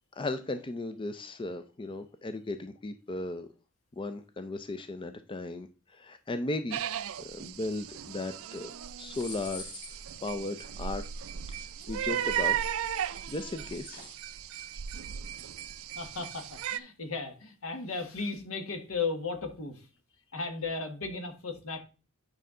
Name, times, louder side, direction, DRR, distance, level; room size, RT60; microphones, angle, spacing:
voice 1, 0.2-3.5 3.9-6.8 7.2-8.7 9.0-11.2 11.5-12.6 13.3-14.0, left 2 dB, 25° left, 0.5 m, -36 dB
sound 1, 6.7-16.8, right 9 dB, 65° right, 0.5 m, -36 dB
sound 2, 9.1-14.1, left 2 dB, 85° left, 4.9 m, -49 dB
voice 2, 15.9-19.9 20.3-21.8, left 4 dB, 70° left, 1.5 m, -35 dB
8.9 x 5.4 x 3.7 m
head